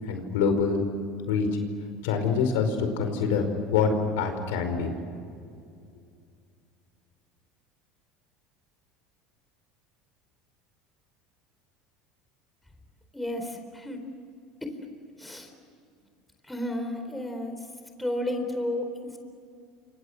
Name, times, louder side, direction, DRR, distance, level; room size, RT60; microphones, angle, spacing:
voice 1, 0.1-0.8 1.3-1.5 2.0-4.9, left 5 dB, 90° left, 6 dB, 5.1 m, -25 dB
voice 2, 13.1-14.0 14.6-14.7 15.2-15.5 16.5-17.5 18.0-19.2, left 1 dB, 5° left, 5 dB, 4.2 m, -32 dB
29.5 x 27.0 x 6.5 m, 2.4 s
supercardioid pair, 130°, 0 cm